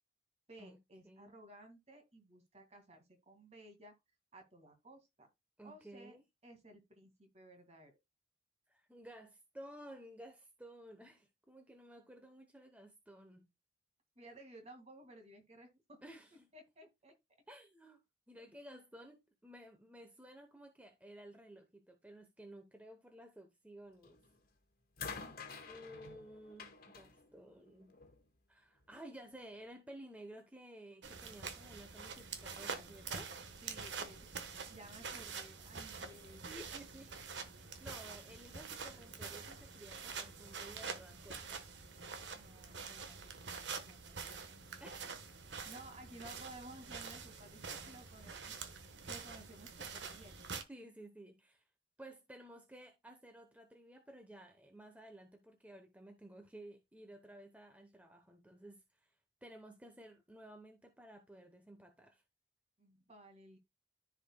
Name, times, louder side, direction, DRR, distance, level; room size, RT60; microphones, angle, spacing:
voice 1, 0.5-3.9 4.3-5.3 5.6-6.2 6.4-7.9 14.2-16.2 16.5-17.1 33.6-36.6 42.3-44.6 45.6-48.5 49.1-50.4 62.8-63.6, right 1 dB, 35° right, 2.0 m, -56 dB
voice 2, 5.6-6.2 8.7-13.5 16.0-16.5 17.5-18.0 18.3-24.2 25.7-27.9 28.5-33.3 36.4-37.2 37.6-41.7 44.8-45.2 50.7-51.6 52.0-59.1 59.4-62.2, right 1 dB, 10° right, 0.8 m, -54 dB
sound 1, 24.0-24.4 25.0-28.2 29.2-29.3, left 5 dB, 55° left, 1.7 m, -49 dB
sound 2, 31.0-50.6, right 5 dB, 80° right, 1.2 m, -46 dB
14.0 x 4.9 x 2.2 m
head